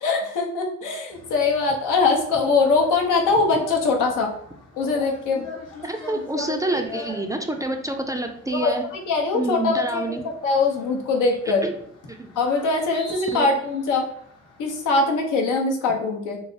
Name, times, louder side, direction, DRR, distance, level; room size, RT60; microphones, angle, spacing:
voice 1, 0.0-4.3 4.8-5.5 6.3-6.6 8.5-10.2 10.4-11.7 12.4-14.1 14.6-16.4, left 3 dB, 85° left, 1 dB, 0.7 m, -22 dB
sound 1, 1.1-15.3, left 2 dB, 55° left, 0.9 m, -43 dB
voice 2, 5.8-8.8 9.3-10.2 11.6-11.7 12.1-12.3 13.3-13.5, right 2 dB, 10° right, 4 dB, 0.3 m, -27 dB
3.1 x 2.8 x 2.7 m, 0.66 s
cardioid pair, 90°, 30 cm